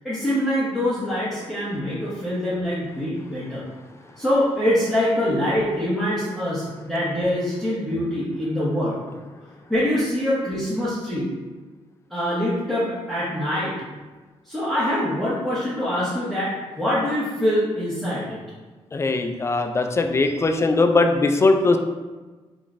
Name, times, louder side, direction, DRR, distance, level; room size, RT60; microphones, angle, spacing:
voice 1, 0.0-3.7 4.1-9.0 9.7-11.3 12.1-13.7 14.4-18.4, left 1 dB, ahead, -12 dB, 1.2 m, -24 dB
voice 2, 18.9-21.8, left 3 dB, 25° left, 5 dB, 0.4 m, -20 dB
3.6 x 3.5 x 2.6 m, 1.3 s
cardioid pair, 85°, 11 cm